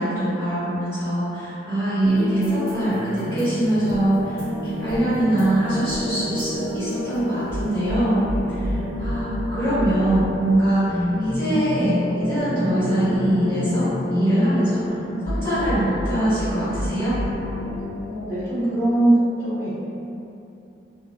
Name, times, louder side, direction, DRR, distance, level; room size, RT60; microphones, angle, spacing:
voice 1, 0.0-8.2 8.5-14.8 15.2-17.2, right 1 dB, 30° left, -15 dB, 1.4 m, -23 dB
sound 1, 2.0-17.8, left 1 dB, 15° left, 1.1 m, -27 dB
voice 2, 8.4-8.9 18.1-19.7, right 1 dB, 15° right, -15 dB, 0.9 m, -22 dB
2.4 x 2.3 x 2.2 m, 2.7 s
head